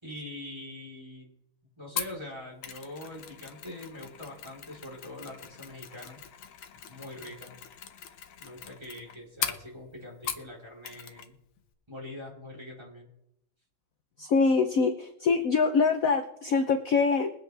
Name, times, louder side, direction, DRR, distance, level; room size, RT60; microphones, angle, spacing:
voice 1, 0.0-1.3 1.8-6.2 6.9-7.6 8.4-11.4 11.9-13.1, left 1 dB, 10° right, -4 dB, 3.7 m, -43 dB
Mechanisms, 2.0-10.6 10.8-11.3 11.6-11.7, left 8 dB, 85° left, 1.8 m, -40 dB
voice 2, 14.2-17.3, left 4 dB, 55° left, 6 dB, 1.0 m, -24 dB
22.5 x 8.1 x 3.4 m, 0.80 s
omnidirectional pair, 2.2 m